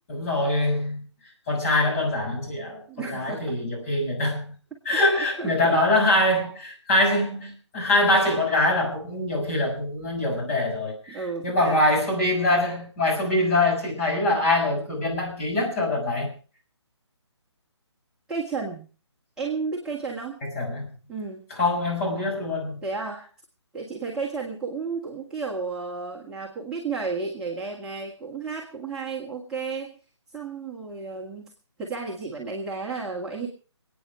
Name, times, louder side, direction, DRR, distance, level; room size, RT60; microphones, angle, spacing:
voice 1, 0.1-1.0 1.5-2.8 3.1-4.5 4.8-16.3 20.4-20.9 21.6-22.8, left 2 dB, 30° left, 6.9 m, -24 dB
voice 2, 2.9-3.6 4.9-5.8 11.1-11.8 18.3-18.8 19.4-20.4 21.1-21.4 22.8-23.3 23.7-29.9 30.3-31.5 31.8-33.5, right 4 dB, 5° right, 1.9 m, -32 dB
27.5 x 9.4 x 4.7 m
figure-of-eight pair, 145°, 15 cm